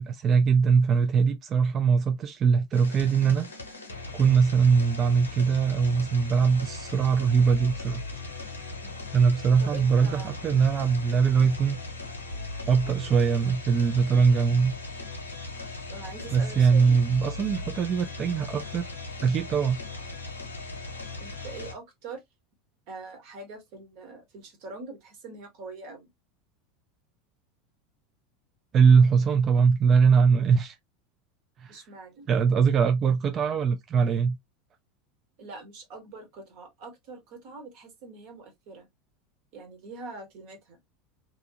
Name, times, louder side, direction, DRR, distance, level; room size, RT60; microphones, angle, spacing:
voice 1, 0.0-3.5 4.1-8.0 9.1-11.8 12.7-14.7 16.3-18.9 19.2-19.8 28.7-30.8 31.6-31.8 32.3-34.4, right 6 dB, 35° right, 0.4 m, -22 dB
sound 1, 2.7-21.7, left 3 dB, 85° left, 0.7 m, -38 dB
voice 2, 9.6-10.5 15.9-17.0 17.6-17.7 21.2-22.2 22.9-26.1 31.7-32.3 35.4-38.9 39.5-40.8, right 3 dB, 55° right, 1.2 m, -43 dB
2.7 x 2.3 x 2.6 m
figure-of-eight pair, 80°, 0 cm